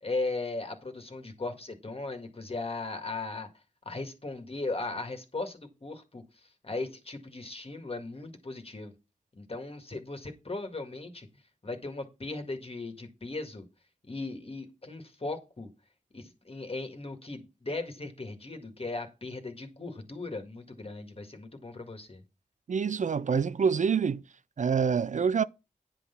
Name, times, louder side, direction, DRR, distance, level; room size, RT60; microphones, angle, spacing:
voice 1, 0.0-3.5 3.9-6.2 6.6-8.9 9.3-11.3 11.6-13.6 14.1-15.7 16.1-22.2, left 3 dB, 45° left, 1.8 m, -37 dB
voice 2, 22.7-24.2 24.6-25.4, right 6 dB, 65° right, 0.4 m, -26 dB
10.0 x 4.0 x 6.9 m
wide cardioid pair, 85°, 14 cm